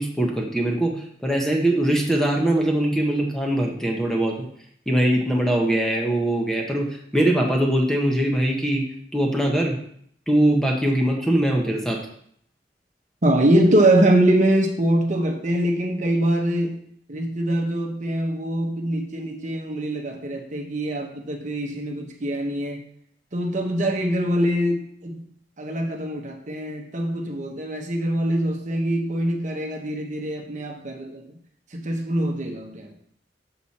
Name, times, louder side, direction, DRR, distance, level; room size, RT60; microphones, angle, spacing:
voice 1, 0.0-4.4 4.9-8.9 9.1-9.7 10.3-12.0, right 1 dB, 5° left, 0 dB, 1.0 m, -22 dB
voice 2, 13.2-16.8 17.1-22.8 23.3-25.2 25.6-31.2 31.7-32.9, right 1 dB, 45° right, 2 dB, 1.1 m, -23 dB
6.9 x 5.8 x 4.2 m, 0.66 s
head